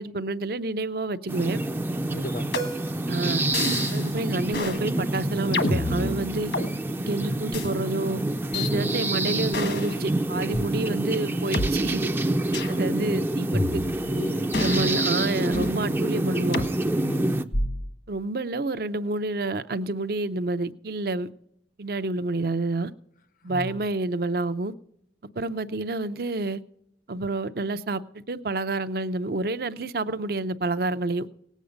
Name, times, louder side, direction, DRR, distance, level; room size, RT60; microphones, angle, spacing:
voice 1, 0.0-1.7 3.1-3.4 3.9-6.5 7.1-8.2 8.5-12.0 12.7-13.8 14.6-16.6 18.1-21.3 21.8-22.9 23.4-24.7 25.4-26.6 27.1-31.3, right 2 dB, 55° right, 0.6 m, -29 dB
sound 1, 1.3-17.4, right 1 dB, 10° right, 0.4 m, -27 dB
voice 2, 2.1-2.6 8.7-9.0 14.0-15.0 17.0-17.5 23.4-23.9, left 1 dB, 50° left, 0.6 m, -36 dB
sound 2, 2.5-3.0 3.5-4.1 4.5-4.8 5.5-6.7 7.5-7.7 8.5-8.7 9.5-10.0 10.5-10.6 11.5-11.7 12.5-12.8 13.5-14.1 14.5-15.8 16.5-16.7 17.5-17.9, left 2 dB, 70° left, 1.4 m, -29 dB
18.5 x 8.3 x 5.1 m
head